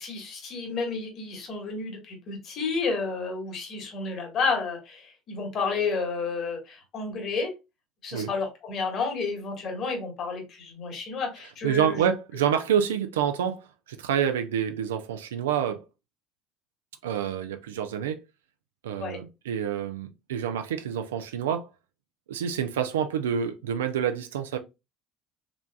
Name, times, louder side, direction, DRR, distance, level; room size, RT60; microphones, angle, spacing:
voice 1, 0.0-7.5 8.0-12.1 19.0-19.2, left 4 dB, 50° left, 1.6 m, -31 dB
voice 2, 11.6-15.8 17.0-18.2 18.8-21.7 22.3-24.6, right 8 dB, 80° right, 0.4 m, -27 dB
3.9 x 3.2 x 2.2 m
hypercardioid pair, 65°, 0 cm